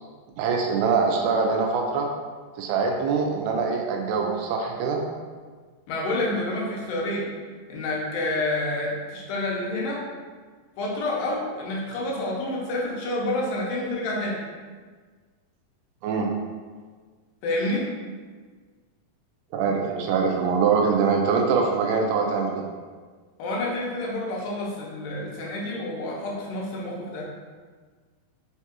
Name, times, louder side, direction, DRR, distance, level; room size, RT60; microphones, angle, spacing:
voice 1, 0.4-2.1 2.6-5.0 16.0-16.3 19.5-22.6, right 5 dB, 80° right, 1 dB, 2.2 m, -23 dB
voice 2, 5.9-7.3 7.7-10.0 10.8-14.4 17.4-17.9 23.4-27.2, left 1 dB, 80° left, -4 dB, 2.5 m, -28 dB
5.8 x 2.4 x 2.9 m, 1.5 s
omnidirectional pair, 4.2 m